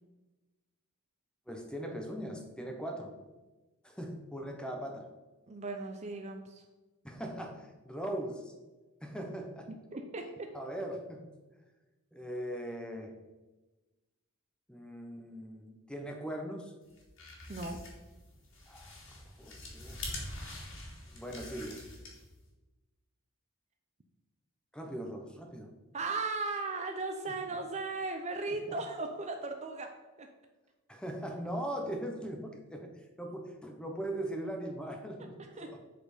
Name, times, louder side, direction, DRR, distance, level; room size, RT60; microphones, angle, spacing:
voice 1, 1.5-3.1 3.8-5.1 7.0-8.5 9.0-9.7 10.5-11.3 12.1-13.1 14.7-16.7 18.7-19.0 19.4-20.0 21.1-21.9 24.7-25.7 27.3-27.4 30.9-32.9 33.2-35.8, right 1 dB, 5° left, 3 dB, 0.9 m, -40 dB
voice 2, 5.5-6.6 9.9-10.5 17.5-17.8 25.9-29.9 30.2-30.3 35.4-35.8, right 3 dB, 30° right, 4 dB, 0.6 m, -37 dB
sound 1, 16.9-22.4, left 2 dB, 65° left, 2.0 m, -45 dB
7.6 x 4.4 x 5.0 m, 1.2 s
head